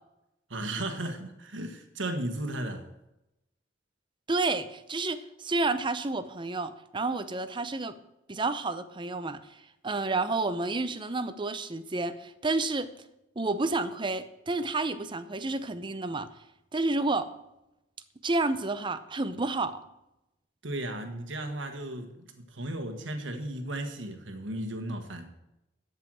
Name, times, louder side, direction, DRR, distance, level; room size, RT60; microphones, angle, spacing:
voice 1, 0.5-2.9 20.6-25.3, right 1 dB, 75° right, 6 dB, 1.4 m, -35 dB
voice 2, 4.3-8.0 8.3-9.4 9.8-12.9 13.4-16.3 16.7-17.3 18.2-19.8, right 3 dB, 25° right, 12 dB, 0.7 m, -30 dB
13.5 x 5.6 x 7.7 m, 0.90 s
head